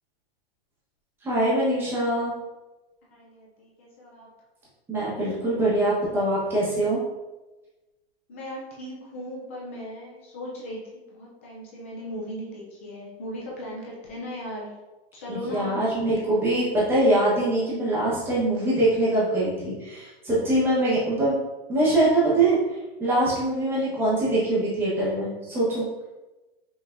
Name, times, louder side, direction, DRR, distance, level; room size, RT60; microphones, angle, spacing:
voice 1, 1.2-2.3 4.9-7.0 15.3-21.4 21.7-22.6 23.0-25.8, right 1 dB, 5° right, -8 dB, 1.0 m, -23 dB
voice 2, 3.1-4.3 8.3-14.7 15.1-15.8, equal, 15° left, -4 dB, 0.3 m, -37 dB
5.6 x 3.3 x 2.5 m, 1.1 s
hypercardioid pair, 170°, 31 cm